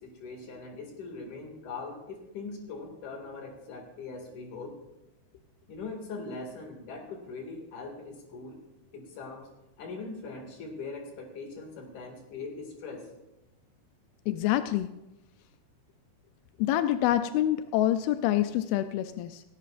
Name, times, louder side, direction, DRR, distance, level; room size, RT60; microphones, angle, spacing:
voice 1, 0.0-4.8 5.7-8.6 8.9-9.4 9.8-13.1, left 3 dB, 55° left, 2 dB, 3.4 m, -41 dB
voice 2, 14.3-14.9 16.6-19.4, left 13 dB, 85° left, 10 dB, 2.2 m, -26 dB
17.5 x 16.5 x 2.5 m, 0.93 s
omnidirectional pair, 4.8 m